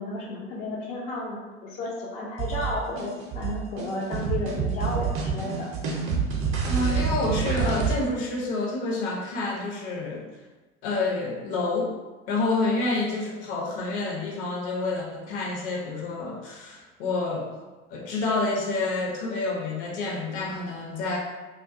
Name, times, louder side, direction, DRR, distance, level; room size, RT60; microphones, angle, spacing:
voice 1, 0.0-5.7, left 2 dB, 20° left, -4 dB, 0.3 m, -33 dB
sound 1, 2.4-7.9, right 6 dB, 40° right, 0.5 m, -27 dB
voice 2, 6.6-10.3 10.8-11.9 12.3-17.5 17.9-21.2, left 3 dB, 50° left, -1 dB, 0.7 m, -28 dB
2.3 x 2.2 x 2.5 m, 1.2 s
figure-of-eight pair, 70°, 35 cm